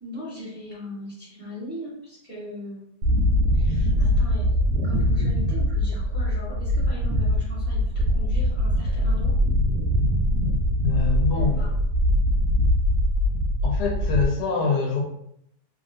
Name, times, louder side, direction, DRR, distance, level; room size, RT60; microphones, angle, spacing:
voice 1, 0.0-2.8 3.5-9.3 11.4-11.7, left 1 dB, 5° right, -9 dB, 1.2 m, -39 dB
sound 1, 3.0-14.2, equal, 80° right, 1.2 m, -22 dB
voice 2, 10.8-11.7 13.6-15.0, left 5 dB, 90° left, 1 dB, 1.2 m, -25 dB
3.1 x 2.5 x 2.6 m, 0.74 s
omnidirectional pair, 1.7 m